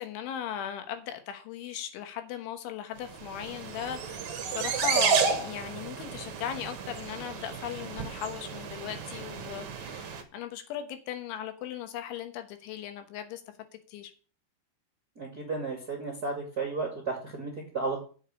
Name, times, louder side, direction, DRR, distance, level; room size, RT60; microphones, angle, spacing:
voice 1, 0.0-13.4 13.9-14.1, left 10 dB, 80° left, 3.6 m, -38 dB
sound 1, 3.1-10.2, right 6 dB, 65° right, 1.9 m, -32 dB
voice 2, 15.1-18.0, right 3 dB, 40° right, 1.4 m, -33 dB
8.0 x 7.1 x 8.6 m
omnidirectional pair, 5.5 m